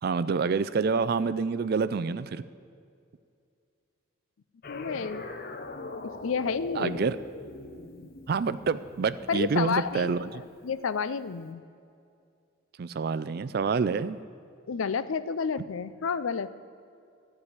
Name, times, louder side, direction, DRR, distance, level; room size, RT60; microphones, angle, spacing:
voice 1, 0.0-2.4 6.8-7.2 8.3-10.4 12.8-14.2, right 5 dB, 50° right, 14 dB, 0.3 m, -27 dB
sound 1, 4.6-9.9, left 2 dB, 45° left, 0.8 m, -41 dB
voice 2, 4.7-5.2 6.0-7.1 9.3-10.3 10.6-11.6 14.7-16.5, left 5 dB, 75° left, 14 dB, 0.5 m, -30 dB
14.0 x 4.8 x 8.5 m, 2.4 s
head